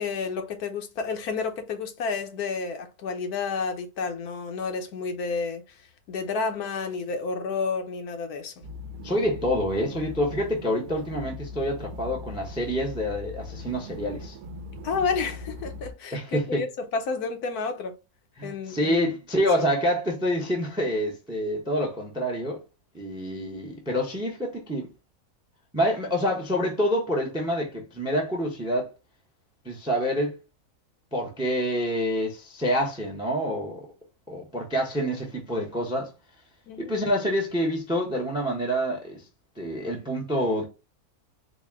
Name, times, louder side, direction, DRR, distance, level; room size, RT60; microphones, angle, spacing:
voice 1, 0.0-8.5 14.8-16.7 16.9-17.9 18.4-19.1 36.7-36.9, left 4 dB, 80° left, 1.2 m, -30 dB
sound 1, 8.6-15.9, left 3 dB, 70° right, 0.9 m, -40 dB
voice 2, 9.0-14.4 16.1-16.6 18.4-22.6 22.9-24.9 25.7-28.9 29.6-30.4 31.1-33.9 34.3-36.1 36.8-39.2 39.6-40.6, equal, 5° right, 0.5 m, -27 dB
4.1 x 2.1 x 3.5 m
omnidirectional pair, 1.6 m